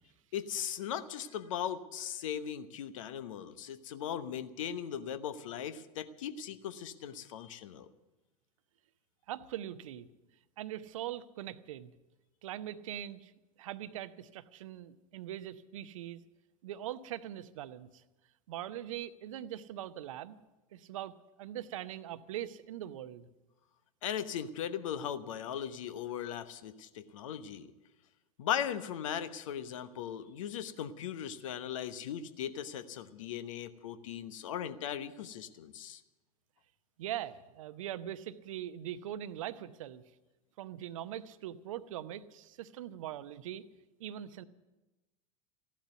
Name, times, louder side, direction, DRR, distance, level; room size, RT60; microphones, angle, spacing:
voice 1, 0.3-7.9 24.0-27.7 28.4-36.0, left 9 dB, 60° left, 12 dB, 1.0 m, -38 dB
voice 2, 9.3-10.1 10.6-11.9 12.4-13.3 13.6-16.2 16.6-18.0 18.5-20.4 20.7-23.3 37.0-40.0 40.6-43.6 44.0-44.4, right 12 dB, 60° right, 14 dB, 0.8 m, -41 dB
15.0 x 11.5 x 8.2 m, 1.1 s
figure-of-eight pair, 85°, 19 cm